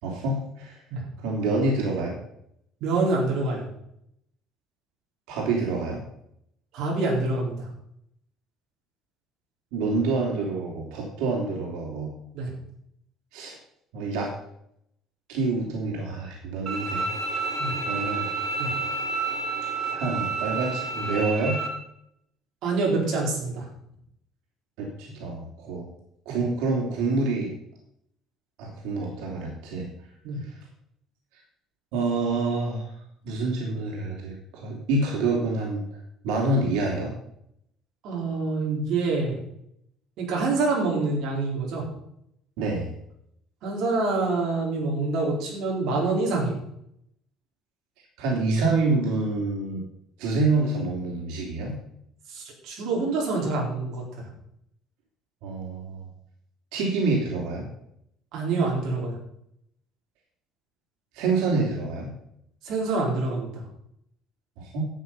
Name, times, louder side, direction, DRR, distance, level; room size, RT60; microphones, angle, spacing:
voice 1, 0.0-0.8 1.2-2.2 5.3-6.0 9.7-12.1 13.3-13.6 13.9-14.3 15.3-17.1 17.9-18.3 19.9-21.6 24.8-25.9 26.2-27.5 28.6-29.9 30.4-30.5 31.9-32.9 33.2-35.8 36.2-37.1 42.6-42.9 48.2-49.8 50.2-51.7 55.4-56.0 56.7-57.7 61.1-62.1 64.6-64.8, right 3 dB, 90° right, -2 dB, 3.3 m, -27 dB
voice 2, 2.8-3.7 6.7-7.7 12.3-12.5 17.6-17.8 18.6-18.7 22.6-23.7 26.3-26.4 30.2-30.4 38.0-39.4 40.2-41.9 43.6-46.6 52.3-54.3 58.3-59.2 62.6-63.6, right 3 dB, 55° right, -2 dB, 4.4 m, -26 dB
Bowed string instrument, 16.7-21.7, right 3 dB, 30° right, 2.3 m, -29 dB
12.5 x 8.4 x 5.6 m, 0.75 s
cardioid pair, 170°, 0 cm